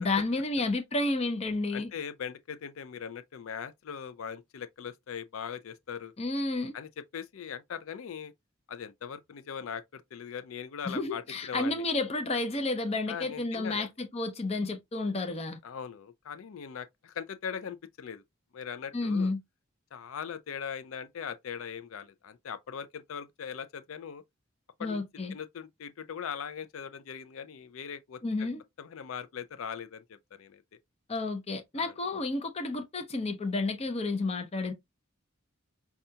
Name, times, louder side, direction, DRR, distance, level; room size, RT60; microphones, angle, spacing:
voice 1, 0.0-1.9 6.2-6.7 10.9-15.6 18.9-19.4 24.8-25.3 28.2-28.6 31.1-34.7, left 2 dB, 30° left, 0.6 m, -31 dB
voice 2, 1.7-6.1 6.7-8.3 8.7-11.8 13.1-13.9 15.6-18.2 18.5-19.3 19.9-24.2 24.8-25.0 25.3-28.5 28.8-30.0 30.3-30.6 31.8-31.9, left 7 dB, 80° left, 0.4 m, -40 dB
5.4 x 2.3 x 2.7 m
head